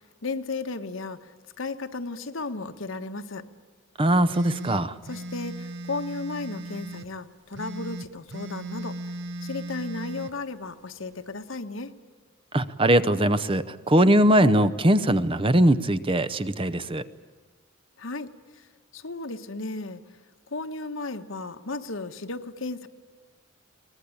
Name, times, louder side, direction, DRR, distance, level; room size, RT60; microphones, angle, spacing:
voice 1, 0.2-3.5 5.1-9.0 9.4-11.9 18.0-18.7 18.9-20.0 20.5-22.9, left 3 dB, 75° left, 8 dB, 1.3 m, -34 dB
voice 2, 4.0-4.9 12.5-17.1, right 1 dB, 25° right, 13 dB, 0.7 m, -21 dB
sound 1, 4.3-7.1 7.5-10.3, right 1 dB, 60° right, 0.8 m, -37 dB
23.0 x 19.5 x 8.6 m, 1.5 s
head